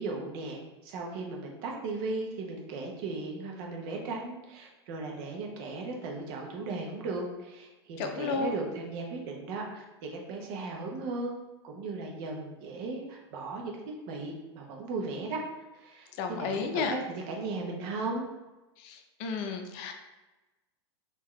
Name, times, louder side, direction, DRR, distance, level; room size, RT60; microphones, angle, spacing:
voice 1, 0.0-11.4 11.6-15.4 15.7-18.3, right 3 dB, 55° right, 0 dB, 0.9 m, -37 dB
voice 2, 8.0-8.5 16.2-16.9 18.8-19.9, left 5 dB, 50° left, 5 dB, 0.6 m, -32 dB
3.8 x 2.8 x 3.2 m, 1.1 s
hypercardioid pair, 115°, 14 cm